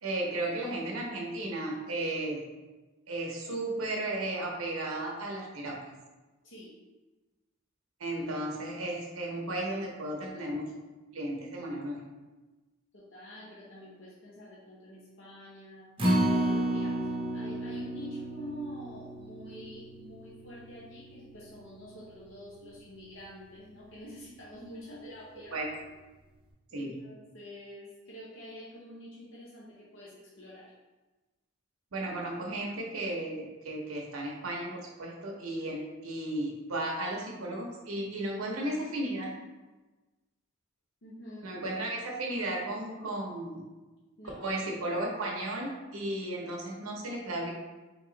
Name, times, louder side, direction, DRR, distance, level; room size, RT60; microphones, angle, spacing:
voice 1, 0.0-2.4 3.1-5.8 8.0-10.7 11.1-12.0 25.5-25.7 26.7-26.9 31.9-39.3 41.4-43.6 44.4-47.5, right 1 dB, 85° right, -1 dB, 0.9 m, -34 dB
voice 2, 6.4-6.8 12.9-16.0 16.3-25.6 26.7-30.7 41.0-41.6 44.2-44.5, equal, 60° left, -6 dB, 0.7 m, -47 dB
Acoustic guitar, 16.0-22.3 22.7-22.8 23.2-23.3, right 1 dB, 25° right, 0.6 m, -32 dB
3.4 x 3.0 x 3.9 m, 1.2 s
head